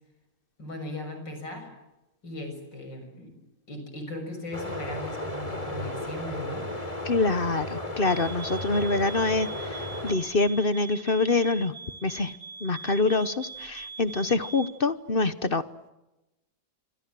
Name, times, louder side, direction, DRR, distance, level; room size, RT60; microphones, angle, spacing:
voice 1, 0.6-1.7 2.2-3.3 3.7-6.8, left 1 dB, 80° left, 6 dB, 7.2 m, -38 dB
sound 1, 4.5-10.1, left 1 dB, 20° left, 3.9 m, -34 dB
voice 2, 7.0-11.7 12.0-12.3 12.6-15.6, left 3 dB, 35° left, 14 dB, 1.1 m, -25 dB
sound 2, 8.0-14.8, right 5 dB, 40° right, 5.2 m, -42 dB
27.5 x 26.0 x 7.7 m, 0.97 s
omnidirectional pair, 1.9 m